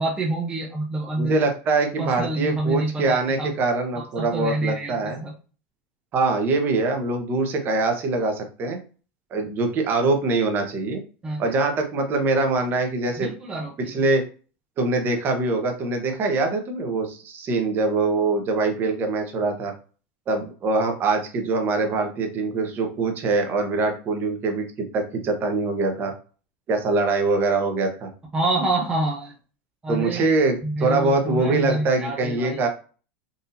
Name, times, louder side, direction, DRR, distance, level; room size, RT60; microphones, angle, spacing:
voice 1, 0.0-1.4 2.0-3.5 3.9-5.3 11.2-11.5 13.2-14.0 28.3-29.3 29.8-32.6, right 2 dB, 15° right, -2 dB, 0.6 m, -27 dB
voice 2, 1.2-5.2 6.1-8.8 9.3-11.0 11.4-13.3 13.9-14.2 14.8-19.7 20.3-24.6 24.9-26.1 26.7-28.1 29.9-32.7, right 3 dB, 35° right, 4 dB, 0.9 m, -23 dB
3.9 x 2.7 x 2.7 m, 0.37 s
supercardioid pair, 140°, 6 cm